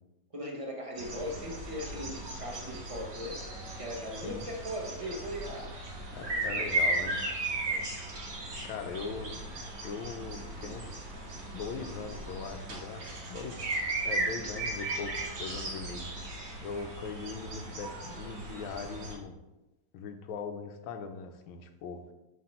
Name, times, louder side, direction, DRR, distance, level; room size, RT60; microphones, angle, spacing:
voice 1, 0.3-3.4 3.8-5.7 6.2-6.7 7.1-7.2 7.7-7.8, equal, 20° right, -1 dB, 0.9 m, -39 dB
sound 1, 1.0-19.1, right 2 dB, 50° right, 1.7 m, -36 dB
voice 2, 6.1-7.2 8.6-10.9 11.5-13.7 14.0-19.3 19.9-22.0, left 5 dB, 85° left, 7 dB, 1.5 m, -40 dB
7.7 x 3.9 x 4.3 m, 1.0 s
omnidirectional pair, 2.2 m